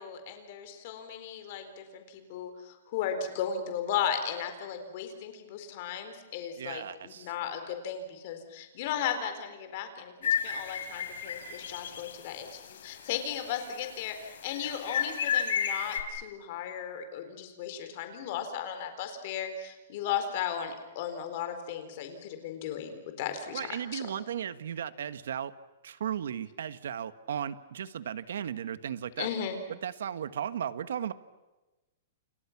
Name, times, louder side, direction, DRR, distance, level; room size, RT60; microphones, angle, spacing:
voice 1, 0.0-23.7 23.9-24.0 29.2-29.6, left 8 dB, 35° left, 7 dB, 4.1 m, -36 dB
voice 2, 6.6-7.3 23.5-25.5 25.8-29.3 29.7-31.1, right 9 dB, 75° right, 13 dB, 1.4 m, -35 dB
sound 1, 10.2-12.1 12.5-12.6 13.1-13.9 14.5-16.0, left 8 dB, 75° left, 4.3 m, -32 dB
30.0 x 29.0 x 6.0 m, 1.1 s
supercardioid pair, 180°, 0 cm